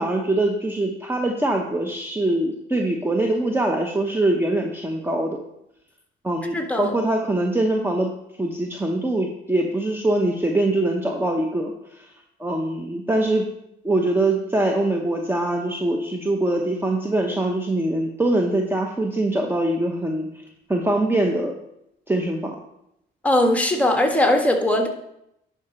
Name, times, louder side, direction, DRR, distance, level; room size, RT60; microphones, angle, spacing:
voice 1, 0.0-5.4 6.2-8.1 8.4-12.1 12.4-13.5 13.8-20.3 20.7-21.5 22.1-22.6, right 1 dB, 10° right, 2 dB, 0.9 m, -23 dB
voice 2, 6.5-6.9 23.2-24.9, left 1 dB, 5° left, 3 dB, 1.5 m, -19 dB
10.5 x 5.0 x 4.3 m, 0.80 s
cardioid pair, 90°, 20 cm